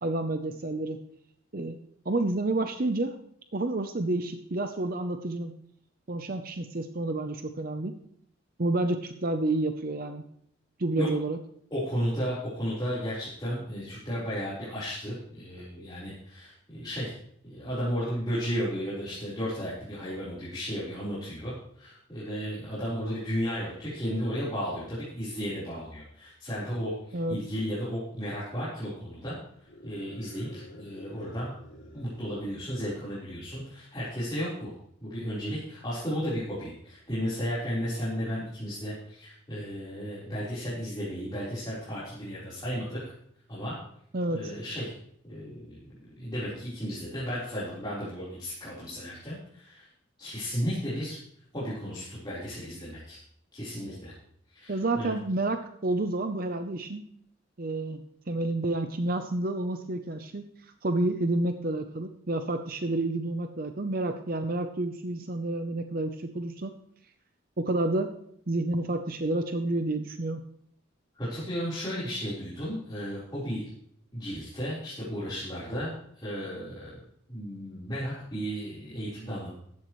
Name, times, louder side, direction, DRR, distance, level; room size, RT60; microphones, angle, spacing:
voice 1, 0.0-1.0 1.5-1.8 2.1-3.2 3.5-5.5 6.1-7.9 8.6-10.2 10.8-11.4 27.1-27.4 44.1-44.5 54.7-57.1 57.6-58.0 58.3-66.7 67.6-68.1 68.5-70.4, right 2 dB, 45° right, 7 dB, 0.7 m, -29 dB
voice 2, 11.7-17.1 17.5-29.4 29.8-31.5 31.9-34.7 35.0-43.0 43.5-43.8 44.3-44.9 45.3-49.9 50.2-51.2 51.5-53.2 53.5-54.1 54.5-55.1 71.1-73.6 74.1-77.0 77.3-79.6, equal, 20° left, -11 dB, 4.2 m, -34 dB
sound 1, 29.6-33.2, left 1 dB, 75° left, 2.9 m, -50 dB
15.5 x 12.0 x 3.2 m, 0.70 s
head